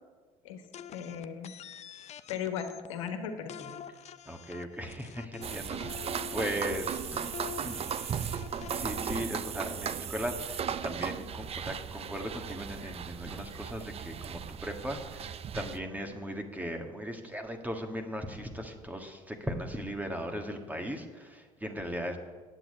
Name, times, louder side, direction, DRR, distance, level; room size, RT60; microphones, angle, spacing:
sound 1, 0.7-3.1 3.5-9.2, left 8 dB, 45° left, 0.6 m, -46 dB
voice 1, 0.9-1.5 2.3-3.7, left 7 dB, 90° left, 6 dB, 1.3 m, -37 dB
voice 2, 4.2-7.2 7.6-7.9 8.7-22.2, equal, 10° right, 4 dB, 1.6 m, -38 dB
sound 2, 5.4-15.8, right 8 dB, 40° right, 0.6 m, -37 dB
8.7 x 7.7 x 8.6 m, 1.4 s
supercardioid pair, 75°, 16 cm